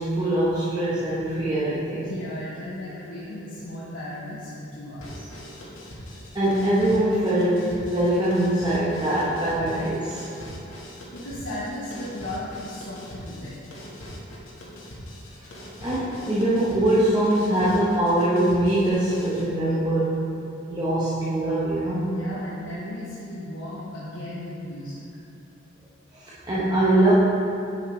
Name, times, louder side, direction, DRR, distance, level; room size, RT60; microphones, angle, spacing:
voice 1, 0.0-2.1 6.3-10.3 15.8-20.2 20.7-22.2 26.1-27.1, right 1 dB, 20° right, -10 dB, 1.0 m, -23 dB
voice 2, 2.0-5.3 6.1-6.2 11.1-13.6 22.1-25.1, left 1 dB, 65° left, -8 dB, 1.1 m, -36 dB
sound 1, 5.0-19.5, equal, 85° left, 1.6 m, -41 dB
9.4 x 6.0 x 3.2 m, 2.8 s
head